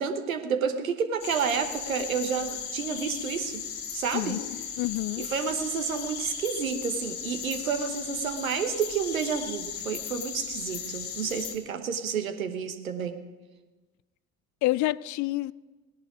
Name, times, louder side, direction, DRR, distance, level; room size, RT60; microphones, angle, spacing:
voice 1, 0.0-3.6 3.9-4.4 5.2-13.2, right 6 dB, 85° right, 1.0 m, -30 dB
sound 1, 1.2-11.5, left 7 dB, 70° left, 1.6 m, -37 dB
voice 2, 4.8-5.3 14.6-15.5, left 17 dB, 50° left, 0.4 m, -28 dB
18.0 x 10.5 x 4.9 m
hypercardioid pair, 55°, 40 cm